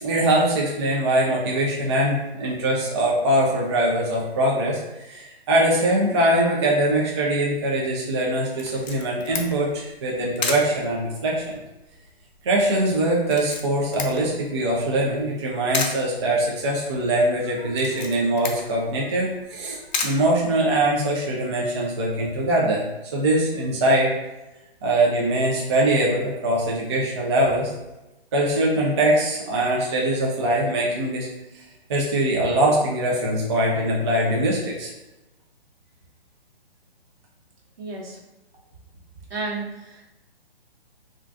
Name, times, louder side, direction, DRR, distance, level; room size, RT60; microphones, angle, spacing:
voice 1, 0.0-11.6 12.4-22.8 23.1-24.1 24.8-27.7 28.3-31.6 31.9-34.9, right 1 dB, 30° right, -3 dB, 0.4 m, -22 dB
Camera, 8.6-21.1, left 4 dB, 45° left, 0.5 m, -35 dB
voice 2, 37.8-38.2 39.3-40.1, right 3 dB, 70° right, -2 dB, 1.0 m, -32 dB
3.6 x 2.5 x 2.3 m, 0.97 s
hypercardioid pair, 140°, 31 cm